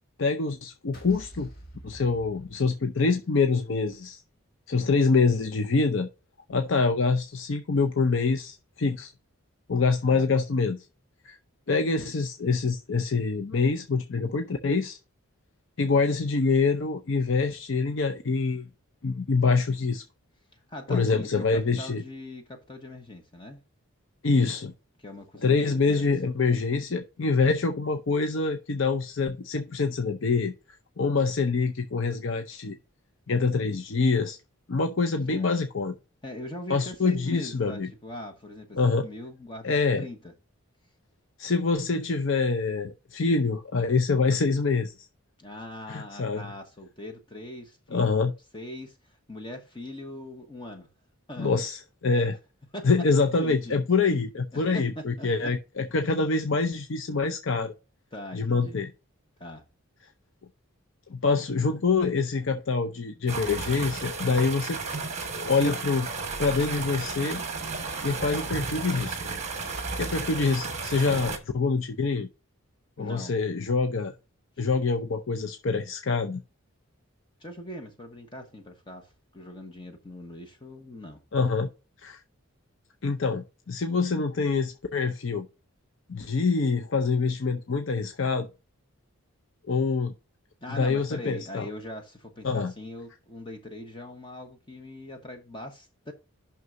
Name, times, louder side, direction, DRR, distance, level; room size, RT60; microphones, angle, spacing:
voice 1, 0.2-1.5 1.8-4.2 4.7-6.1 6.5-9.1 9.7-10.8 11.2-11.4 11.7-15.0 15.8-18.6 19.0-20.0 20.9-22.0 24.2-24.7 25.4-30.5 31.0-32.8 33.3-34.4 34.7-35.9 36.7-37.9 38.8-39.1 39.6-40.0 41.4-44.9 45.9-46.4 47.9-48.3 51.4-52.4 52.8-57.7 58.3-58.9 61.1-64.8 65.5-66.1 66.4-67.4 68.0-69.2 70.0-72.3 73.0-74.1 74.6-76.4 81.3-81.7 82.0-82.2 83.0-85.5 86.1-88.5 89.7-90.1 90.7-91.7 92.4-92.7, left 4 dB, 60° left, 0.6 m, -25 dB
sound 1, 0.9-3.3, right 1 dB, 40° left, 1.8 m, -47 dB
voice 2, 20.5-23.6 25.0-26.1 35.3-35.5 36.2-40.3 45.4-48.1 48.5-50.9 51.3-51.5 52.1-52.3 52.7-52.9 53.4-53.8 54.5-55.5 58.1-58.8 59.4-59.6 73.0-73.3 77.4-81.2 90.6-96.1, left 1 dB, 20° left, 1.1 m, -41 dB
sound 2, 63.3-71.4, right 4 dB, 30° right, 1.3 m, -33 dB
9.3 x 6.0 x 2.6 m
head